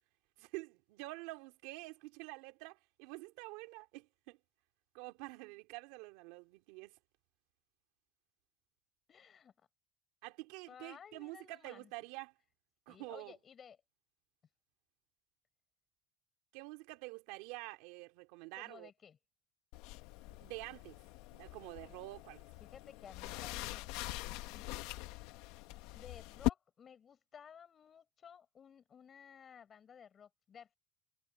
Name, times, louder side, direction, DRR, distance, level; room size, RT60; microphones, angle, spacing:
voice 1, 0.4-4.4 4.9-6.9 10.2-12.3 12.9-13.3 16.5-18.9 20.3-20.9 21.4-22.4, right 22 dB, 85° right, 2.7 m, -48 dB
voice 2, 9.1-9.5 10.7-11.9 12.9-13.8 18.5-19.2 22.6-23.9 24.5-24.7 25.9-30.8, left 7 dB, 35° left, 6.9 m, -56 dB
sound 1, 19.7-26.5, left 19 dB, 80° left, 1.1 m, -42 dB
cardioid pair, 130°, 0 cm